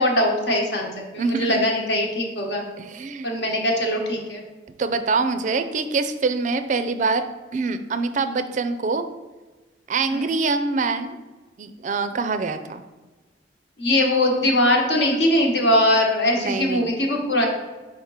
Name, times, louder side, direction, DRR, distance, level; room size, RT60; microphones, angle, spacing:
voice 1, 0.0-2.6 3.2-4.4 10.1-10.2 13.8-17.5, left 1 dB, 70° left, 1 dB, 1.2 m, -21 dB
voice 2, 1.2-1.7 2.8-3.3 4.8-9.0 9.9-11.2 11.6-12.8 16.3-17.0, right 4 dB, 45° right, 9 dB, 0.4 m, -25 dB
5.0 x 3.6 x 5.5 m, 1.3 s
head